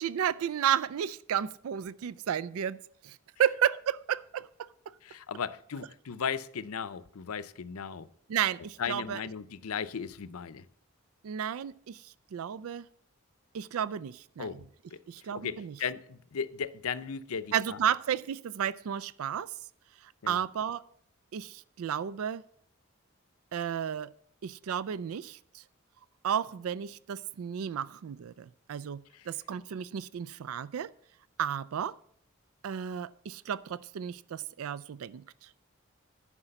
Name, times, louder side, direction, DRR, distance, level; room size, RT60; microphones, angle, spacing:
voice 1, 0.0-4.7 8.3-9.2 11.2-12.9 13.5-14.5 15.1-15.8 17.5-19.5 20.0-20.8 21.3-22.5 23.5-24.1 24.4-25.6 26.2-30.9 31.4-32.0 32.6-35.5, right 9 dB, 80° right, 0.4 m, -33 dB
voice 2, 5.0-8.1 8.8-10.7 14.4-17.8 20.2-20.4 29.1-29.3, left 6 dB, 85° left, 0.6 m, -37 dB
9.8 x 6.0 x 7.8 m
head